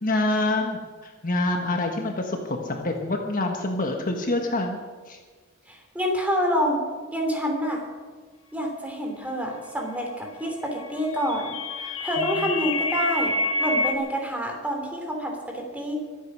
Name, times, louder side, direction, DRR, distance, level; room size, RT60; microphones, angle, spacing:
voice 1, 0.0-4.8 5.1-5.2 11.8-12.3, left 2 dB, 40° left, 2 dB, 1.3 m, -27 dB
voice 2, 5.7-6.8 7.1-7.9 8.5-11.5 12.0-13.3 13.6-16.0, equal, 5° right, 1 dB, 3.0 m, -27 dB
sound 1, 10.8-14.0, left 2 dB, 75° left, 1.3 m, -27 dB
23.0 x 8.6 x 6.2 m, 1.5 s
head